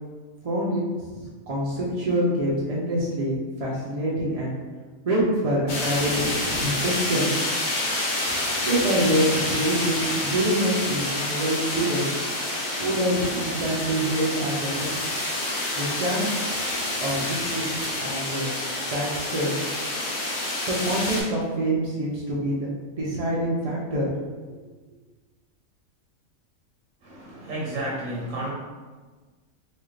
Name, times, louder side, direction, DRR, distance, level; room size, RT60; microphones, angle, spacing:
voice 1, 0.4-4.5 5.0-6.2 6.5-7.3 8.7-12.1 12.8-15.1 15.7-16.3 17.0-18.5 18.9-19.5 20.6-24.1 24.5-24.6, right 1 dB, 50° right, -5 dB, 0.4 m, -26 dB
sound 1, 5.7-21.2, left 1 dB, 60° left, 1.1 m, -28 dB
voice 2, 27.0-28.5, right 1 dB, 75° right, -4 dB, 1.2 m, -31 dB
4.1 x 2.3 x 3.2 m, 1.4 s
omnidirectional pair, 1.4 m